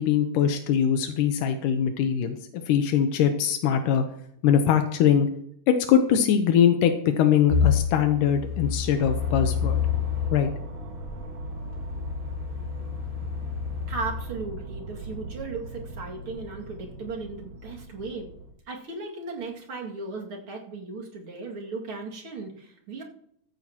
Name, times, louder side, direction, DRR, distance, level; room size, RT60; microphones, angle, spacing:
voice 1, 0.0-2.4 2.7-4.0 4.4-5.3 5.7-9.8 10.3-10.5, left 8 dB, 85° left, 6 dB, 2.5 m, -22 dB
sound 1, 7.5-10.4 11.0-14.2, left 7 dB, 60° left, 4.0 m, -28 dB
sound 2, 9.0-18.5, right 1 dB, 60° right, 2.6 m, -38 dB
voice 2, 13.9-18.3 18.7-23.0, right 3 dB, 45° right, -1 dB, 2.8 m, -36 dB
16.0 x 13.5 x 2.9 m, 0.70 s
omnidirectional pair, 3.6 m